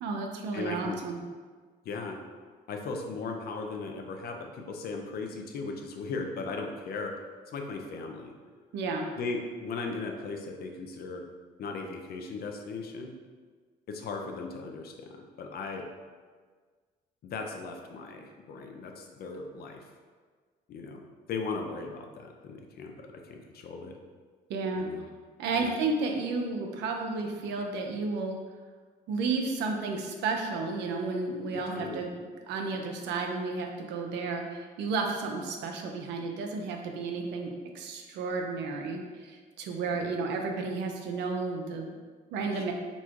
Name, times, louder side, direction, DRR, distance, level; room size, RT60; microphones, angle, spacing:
voice 1, 0.0-1.2 8.7-9.1 24.5-24.9 25.4-28.4 29.1-42.0 42.3-42.7, right 3 dB, 80° right, 2 dB, 0.6 m, -32 dB
voice 2, 0.5-1.0 1.8-2.2 2.7-7.1 7.5-8.3 9.2-11.2 11.6-13.1 13.9-15.8 17.2-19.8 20.7-21.0 21.3-24.0 24.8-25.1 25.6-25.7 31.5-32.0 42.5-42.7, left 4 dB, 60° left, 3 dB, 0.6 m, -37 dB
4.1 x 2.4 x 4.6 m, 1.5 s
supercardioid pair, 80°, 18 cm